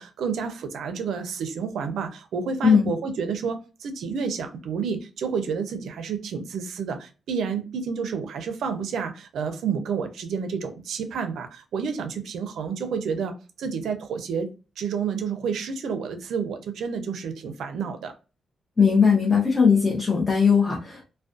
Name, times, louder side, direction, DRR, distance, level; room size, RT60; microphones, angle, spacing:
voice 1, 0.0-14.5 14.8-18.2, right 6 dB, 90° right, 0.4 m, -30 dB
voice 2, 18.8-21.0, left 6 dB, 25° left, 0.5 m, -19 dB
2.4 x 2.1 x 2.4 m
cardioid pair, 120°, 0 cm